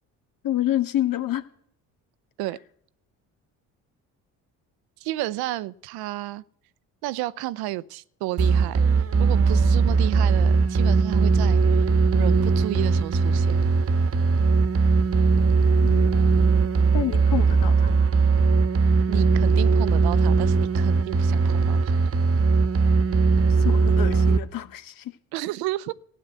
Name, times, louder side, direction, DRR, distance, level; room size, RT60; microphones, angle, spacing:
voice 1, 0.4-1.4 15.8-16.5 16.9-17.9 23.5-25.2, left 12 dB, 60° left, 1.6 m, -28 dB
voice 2, 5.0-6.4 7.0-8.8 9.2-13.6 19.1-22.1 25.3-25.9, right 16 dB, 80° right, 0.7 m, -32 dB
sound 1, 8.4-24.4, right 4 dB, 40° right, 1.2 m, -20 dB
14.5 x 9.6 x 8.2 m
supercardioid pair, 65°, 37 cm